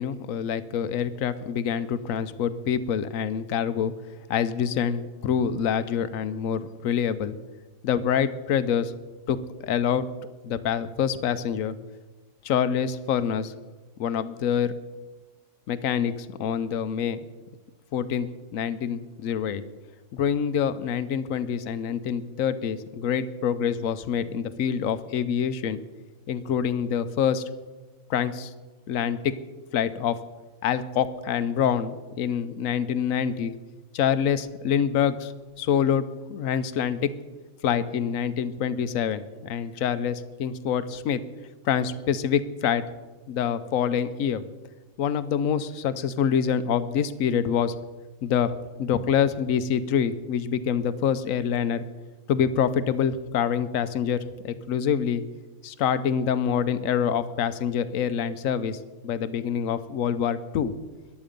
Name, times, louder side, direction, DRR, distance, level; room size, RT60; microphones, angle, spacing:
voice 1, 0.0-3.9 4.3-7.4 7.8-8.9 9.3-9.4 9.6-10.1 10.4-11.7 12.4-13.5 14.0-14.7 15.7-17.2 17.9-19.6 20.1-25.8 26.3-27.4 28.1-28.5 28.9-29.3 29.7-30.2 30.6-33.5 33.9-36.0 36.3-37.1 37.6-41.2 41.6-42.8 43.3-44.4 45.0-47.7 48.2-48.5 48.8-51.9 52.3-55.2 55.6-60.8, left 8 dB, 85° left, 13 dB, 1.1 m, -26 dB
14.5 x 11.0 x 5.2 m, 1.2 s
omnidirectional pair, 1.4 m